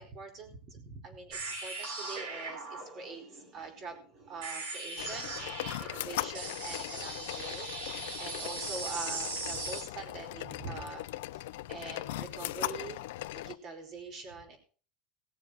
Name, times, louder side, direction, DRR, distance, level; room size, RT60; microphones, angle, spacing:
voice 1, 0.0-4.0 4.3-11.0 11.3-13.0 13.3-14.6, right 4 dB, 40° right, 4 dB, 4.3 m, -44 dB
sound 1, 1.3-9.8, right 3 dB, 90° right, 7.9 m, -39 dB
sound 2, 5.0-13.5, left 16 dB, 85° left, 0.6 m, -39 dB
18.5 x 7.2 x 4.9 m, 0.40 s
supercardioid pair, 155°, 0 cm